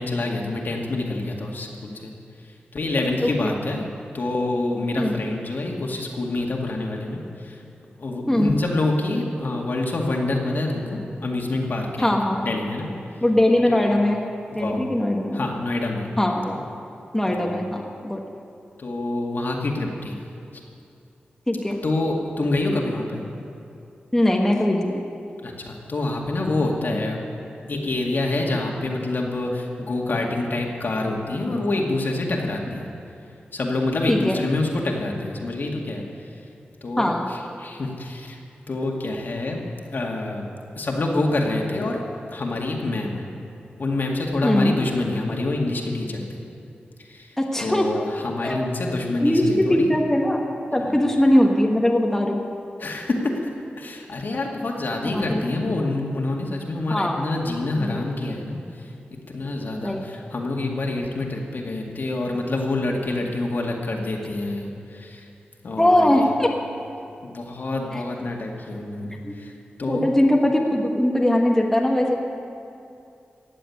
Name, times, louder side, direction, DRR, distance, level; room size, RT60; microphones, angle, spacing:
voice 1, 0.0-2.1 2.7-3.9 4.1-7.6 8.0-12.1 12.4-12.9 13.7-13.8 14.5-14.8 15.3-16.1 17.3-17.6 18.8-20.2 21.8-23.2 25.4-27.3 27.7-32.9 33.5-36.0 36.8-38.4 38.7-39.6 39.9-40.5 40.8-42.0 42.3-43.2 43.8-46.2 47.0-47.3 47.6-49.9 50.8-51.0 52.8-53.3 53.8-58.6 59.3-65.2 65.6-66.2 67.2-69.5 69.8-70.1, left 2 dB, 60° left, 0 dB, 2.1 m, -26 dB
voice 2, 3.2-3.5 5.0-5.2 8.3-8.5 12.0-12.5 13.2-14.2 14.5-15.4 16.2-16.6 17.1-18.2 21.5-21.8 24.1-25.0 34.1-34.3 37.0-37.3 44.4-44.8 47.4-47.9 48.4-48.6 48.9-50.5 50.7-52.4 55.0-55.4 56.9-57.2 57.8-58.0 59.8-60.0 65.8-66.5 67.9-68.0 69.2-69.3 69.9-72.2, left 1 dB, 10° left, 0 dB, 1.4 m, -21 dB
16.0 x 7.7 x 9.5 m, 2.6 s
wide cardioid pair, 85°, 4 cm